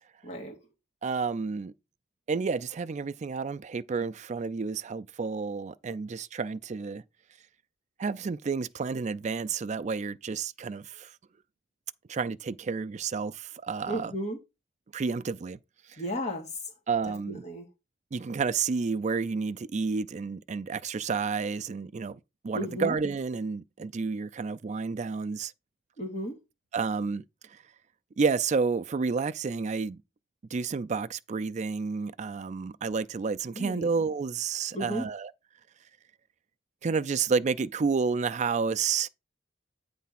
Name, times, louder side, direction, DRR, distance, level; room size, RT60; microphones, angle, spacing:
voice 1, 0.2-0.6 13.9-14.4 16.0-16.6 17.1-17.7 22.5-23.0 26.0-26.4 33.5-33.9 34.7-35.1, equal, 35° left, 1.9 m, -34 dB
voice 2, 1.0-1.7 2.3-7.0 8.0-11.2 12.1-14.1 14.9-15.6 15.9-16.0 16.9-17.4 18.1-25.5 26.7-27.6 28.2-30.0 30.5-35.3 36.8-39.1, right 5 dB, 40° right, 0.4 m, -30 dB
8.3 x 3.4 x 5.7 m
head